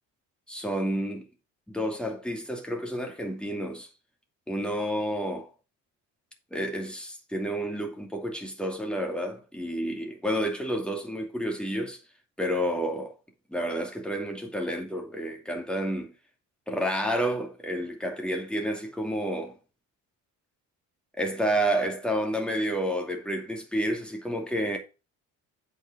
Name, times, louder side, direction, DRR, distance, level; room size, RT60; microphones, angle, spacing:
voice 1, 0.5-1.2 1.7-3.9 4.5-5.5 6.5-12.0 12.4-13.1 13.5-16.1 16.7-19.5 21.2-24.8, equal, 5° left, 2.5 m, -30 dB
8.2 x 5.2 x 5.6 m
cardioid pair, 110°, 33 cm